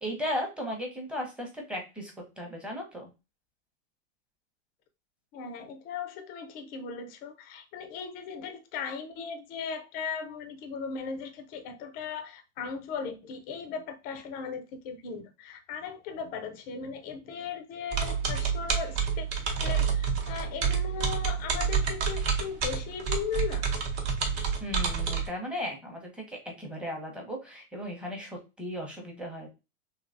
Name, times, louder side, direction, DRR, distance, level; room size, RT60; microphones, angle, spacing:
voice 1, 0.0-3.1 24.6-29.5, equal, 5° right, 0.8 m, -36 dB
voice 2, 5.3-19.3 19.6-23.7 25.1-25.2, left 6 dB, 25° left, 0.4 m, -37 dB
sound 1, 17.9-25.3, right 6 dB, 40° right, 0.9 m, -29 dB
3.1 x 2.8 x 2.5 m
hypercardioid pair, 135°, 39 cm